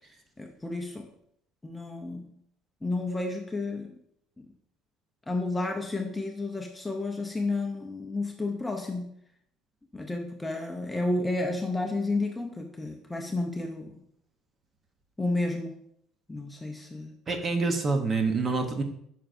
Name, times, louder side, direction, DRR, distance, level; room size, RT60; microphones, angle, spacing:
voice 1, 0.4-1.1 1.6-2.2 2.8-3.9 5.3-9.1 9.9-14.0 15.2-15.7 16.3-17.1, left 2 dB, 10° left, 3 dB, 0.5 m, -31 dB
voice 2, 17.3-18.8, right 3 dB, 25° right, 6 dB, 0.8 m, -26 dB
9.1 x 5.8 x 2.6 m, 0.71 s
cardioid pair, 165°, 0 cm